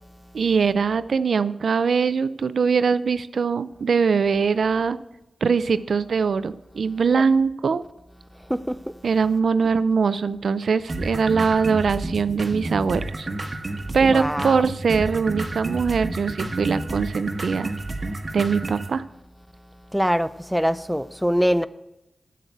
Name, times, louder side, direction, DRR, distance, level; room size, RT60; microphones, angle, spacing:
voice 1, 0.3-5.0 5.4-7.8 9.0-13.3 13.9-17.7 18.3-19.0, right 5 dB, 80° right, 0.4 m, -22 dB
sound 1, 10.9-18.9, right 2 dB, 40° right, 1.1 m, -30 dB
voice 2, 14.0-14.7 19.9-21.7, equal, ahead, 0.4 m, -23 dB
7.9 x 7.4 x 8.2 m
wide cardioid pair, 90°, 0 cm